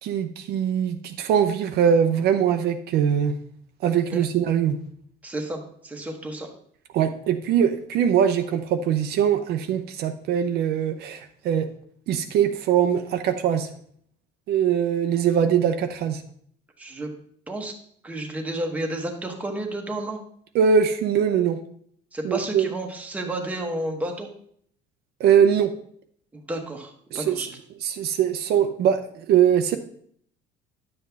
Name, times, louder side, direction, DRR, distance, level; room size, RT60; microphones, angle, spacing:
voice 1, 0.0-3.3 3.8-4.8 6.9-11.7 12.1-13.7 14.5-16.2 20.5-21.6 22.2-22.7 25.2-25.7 27.1-27.5 27.8-29.8, right 8 dB, 55° right, 7 dB, 0.7 m, -22 dB
voice 2, 5.2-6.5 16.8-17.1 17.5-17.7 18.0-20.2 22.1-24.3 26.3-27.5, right 1 dB, 5° right, 2 dB, 1.2 m, -31 dB
10.5 x 7.6 x 3.5 m, 0.63 s
cardioid pair, 170°, 19 cm